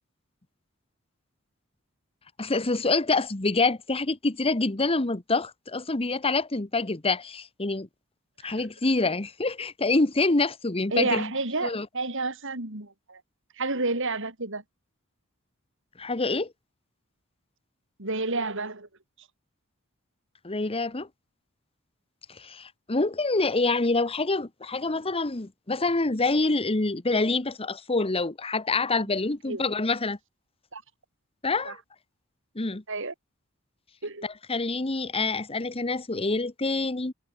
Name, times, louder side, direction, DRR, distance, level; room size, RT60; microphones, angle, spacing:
voice 1, 2.4-7.9 8.4-11.3 11.6-11.9 16.0-16.5 20.4-21.1 22.3-30.2 31.4-31.8 32.5-32.8 34.2-37.1, left 3 dB, 25° left, 1.2 m, -26 dB
voice 2, 10.9-13.2 13.6-14.6 18.0-18.9 29.5-29.6 30.7-30.8 31.7-31.8 32.9-33.1 34.0-34.3, right 3 dB, 65° right, 6.7 m, -30 dB
head